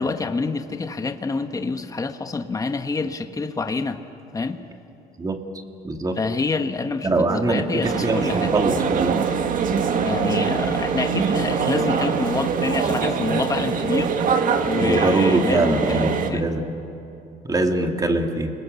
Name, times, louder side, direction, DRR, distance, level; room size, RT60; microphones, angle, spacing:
voice 1, 0.0-4.0 4.3-4.6 6.2-8.5 10.0-14.3 14.6-16.4, left 4 dB, 20° left, 8 dB, 1.3 m, -27 dB
voice 2, 5.8-6.2 7.0-9.2 14.8-16.7 17.4-18.5, right 2 dB, 20° right, 4 dB, 2.4 m, -23 dB
sound 1, 7.8-16.3, right 6 dB, 50° right, 2.0 m, -23 dB
29.5 x 20.5 x 8.3 m, 2.8 s
cardioid pair, 110°, 17 cm